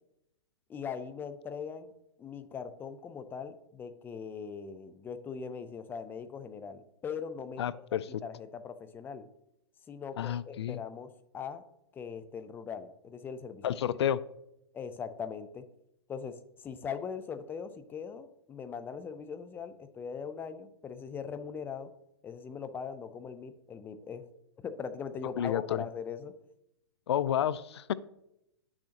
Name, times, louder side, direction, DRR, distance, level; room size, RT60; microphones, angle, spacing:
voice 1, 0.7-1.9 2.2-7.7 8.2-9.3 9.9-11.6 11.9-13.8 14.7-15.6 16.1-21.9 22.2-24.2 24.6-26.4, left 6 dB, 15° left, 10 dB, 0.5 m, -40 dB
voice 2, 7.6-8.1 10.2-10.8 13.6-14.2 25.4-25.8 27.1-27.9, left 10 dB, 75° left, 18 dB, 0.4 m, -30 dB
9.8 x 6.4 x 2.9 m, 0.82 s
hypercardioid pair, 130°, 14 cm